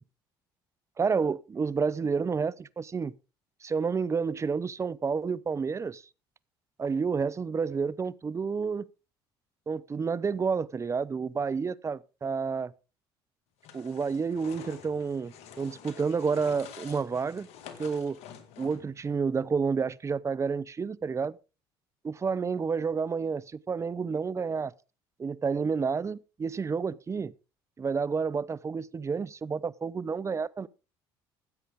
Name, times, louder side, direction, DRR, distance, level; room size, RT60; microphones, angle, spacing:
voice 1, 1.0-3.1 3.6-6.0 6.8-8.9 9.7-12.7 13.7-17.5 17.8-18.2 18.6-21.4 22.0-24.7 25.2-27.3 27.8-30.7, right 5 dB, 25° right, 0.6 m, -30 dB
sound 1, 13.6-19.0, left 8 dB, 70° left, 2.0 m, -48 dB
15.5 x 8.2 x 3.6 m
supercardioid pair, 75°, 11 cm